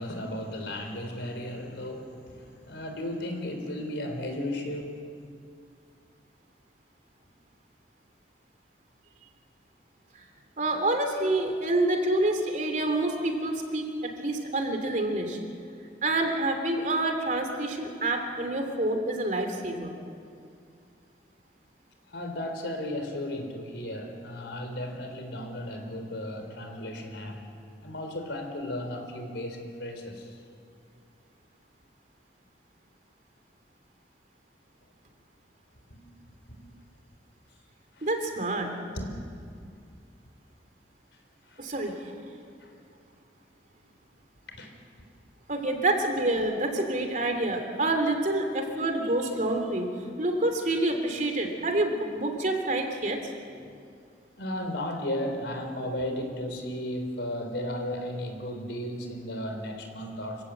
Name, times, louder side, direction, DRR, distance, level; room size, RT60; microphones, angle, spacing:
voice 1, 0.0-4.9 22.0-27.4 27.8-30.4 35.9-36.0 36.5-36.7 37.9-38.1 38.9-39.2 39.8-39.9 41.5-41.7 42.6-42.9 44.5-44.7 45.7-45.8 53.6-53.8 54.4-60.4, left 1 dB, 85° left, 4 dB, 3.8 m, -35 dB
voice 2, 10.6-13.9 14.2-15.4 16.0-19.9 38.0-38.7 41.6-42.1 45.5-49.9 50.2-53.2, right 2 dB, 45° right, 4 dB, 3.0 m, -27 dB
26.5 x 16.5 x 8.1 m, 2.3 s
head